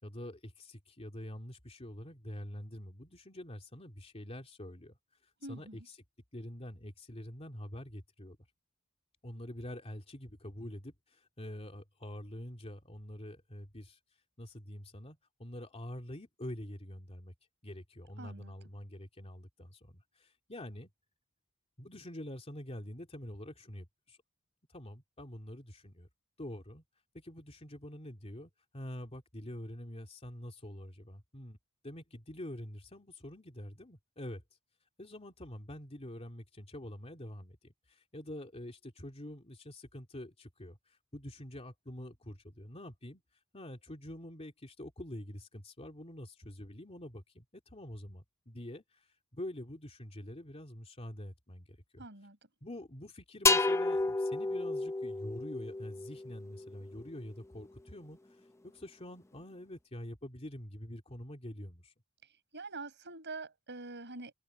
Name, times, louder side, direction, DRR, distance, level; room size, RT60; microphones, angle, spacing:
voice 1, 0.0-5.0 5.5-6.0 6.3-8.4 9.2-14.0 14.4-17.3 17.6-20.9 21.8-24.2 24.7-26.1 26.4-26.8 27.1-31.6 31.8-34.4 35.0-43.2 43.5-49.1 49.3-52.0 52.6-58.2 58.6-61.9, left 1 dB, 30° left, 2.8 m, -46 dB
voice 2, 5.4-5.9 18.2-18.5 52.0-52.4 62.2-64.3, right 3 dB, 55° right, 6.8 m, -45 dB
sound 1, 53.5-57.1, left 3 dB, 10° left, 0.7 m, -31 dB
open air
head